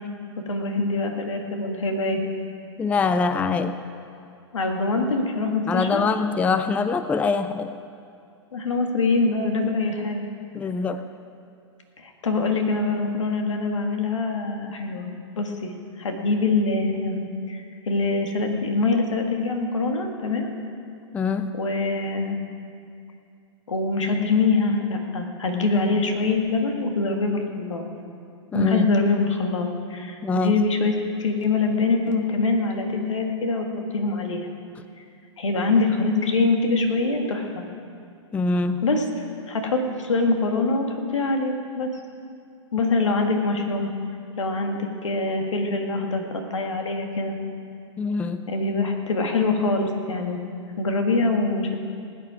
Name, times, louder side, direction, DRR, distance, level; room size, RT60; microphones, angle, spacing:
voice 1, 0.5-2.2 4.5-6.0 8.5-10.3 12.0-15.7 16.0-20.5 21.5-22.4 23.7-27.8 28.5-33.7 33.9-34.5 35.4-37.6 38.8-41.9 42.7-43.9 44.4-47.4 48.5-50.4 50.8-51.8, left 3 dB, 85° left, 3 dB, 1.8 m, -24 dB
voice 2, 2.8-3.8 5.7-7.7 10.5-11.0 21.1-21.5 28.5-28.9 30.2-30.6 38.3-38.8 48.0-48.4, left 4 dB, 10° left, 11 dB, 0.4 m, -24 dB
19.5 x 8.6 x 5.0 m, 2.4 s
hypercardioid pair, 120°, 15 cm